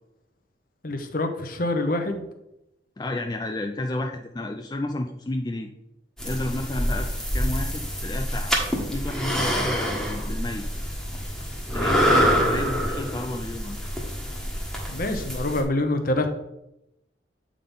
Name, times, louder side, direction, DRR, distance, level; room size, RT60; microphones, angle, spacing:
voice 1, 0.8-2.3 14.9-16.3, left 2 dB, 50° left, 7 dB, 0.9 m, -26 dB
voice 2, 3.0-5.7 6.2-10.7 11.7-13.8, left 1 dB, 20° left, 4 dB, 0.4 m, -31 dB
sound 1, 6.2-15.6, equal, ahead, 1.3 m, -26 dB
8.5 x 3.8 x 5.4 m, 0.86 s
head